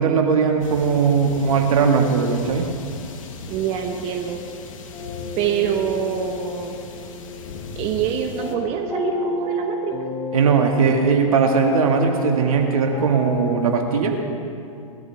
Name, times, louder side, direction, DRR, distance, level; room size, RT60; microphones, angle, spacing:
voice 1, 0.0-2.7 10.3-14.2, right 5 dB, 70° right, 3 dB, 2.0 m, -19 dB
sound 1, 0.6-8.5, left 4 dB, 65° left, 1.6 m, -38 dB
voice 2, 3.5-4.4 5.4-6.7 7.7-9.9, right 8 dB, 35° right, 3 dB, 1.2 m, -25 dB
sound 2, 4.9-14.4, left 4 dB, 20° left, 2.6 m, -33 dB
20.5 x 13.0 x 3.5 m, 2.4 s
hypercardioid pair, 115°, 18 cm